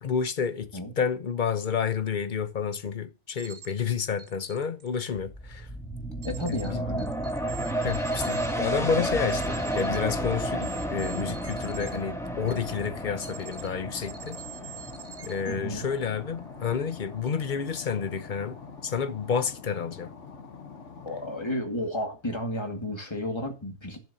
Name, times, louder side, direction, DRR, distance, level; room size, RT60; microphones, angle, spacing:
voice 1, 0.0-0.7 1.0-5.7 6.4-6.8 7.8-14.4 15.2-20.1, left 6 dB, 45° left, 0.9 m, -30 dB
sound 1, 3.4-3.9 4.2-4.9 6.2-6.7 7.0-12.0 12.5-12.9 13.2-13.7 14.0-15.5, right 9 dB, 50° right, 2.2 m, -45 dB
sound 2, 5.2-18.5 18.9-19.0, right 1 dB, ahead, 2.2 m, -32 dB
voice 2, 6.2-7.1 15.5-15.9 21.0-24.0, left 1 dB, 25° left, 2.0 m, -32 dB
sound 3, 12.2-21.5, left 6 dB, 80° left, 1.5 m, -45 dB
12.0 x 11.0 x 2.8 m
omnidirectional pair, 1.2 m